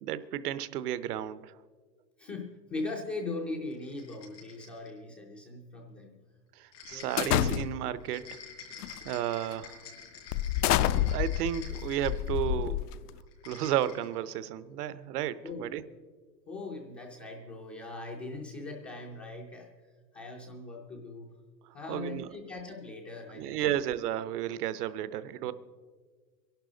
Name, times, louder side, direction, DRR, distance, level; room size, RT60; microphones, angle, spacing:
voice 1, 0.0-1.5 6.6-8.3 9.0-9.8 10.9-12.9 13.4-15.8 21.9-22.3 23.3-25.5, right 11 dB, 65° right, 15 dB, 0.9 m, -33 dB
voice 2, 2.2-6.2 6.9-7.4 15.4-15.7 16.5-19.7 20.1-21.3 21.7-23.8 25.4-25.5, left 2 dB, 10° left, -2 dB, 0.4 m, -40 dB
sound 1, 3.7-5.0 6.7-12.6 13.3-14.2, left 6 dB, 85° left, 5.1 m, -49 dB
sound 2, 7.2-8.0 8.8-9.1 9.5-9.6 10.3-13.2, left 12 dB, 65° left, 0.6 m, -28 dB
22.5 x 11.5 x 3.9 m, 1.5 s
supercardioid pair, 155°, 50 cm